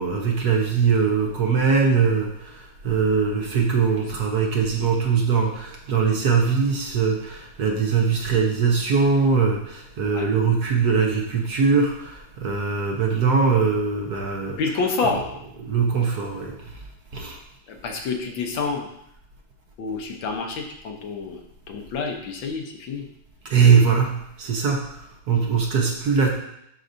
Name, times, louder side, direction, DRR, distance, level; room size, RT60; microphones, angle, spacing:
voice 1, 0.0-14.8 15.0-16.7 17.1-17.4 23.5-26.3, right 5 dB, 60° right, 0 dB, 1.2 m, -21 dB
voice 2, 14.6-15.2 17.7-18.9 19.8-23.0, left 4 dB, 75° left, 3 dB, 1.6 m, -28 dB
11.5 x 4.8 x 2.6 m, 0.78 s
omnidirectional pair, 2.2 m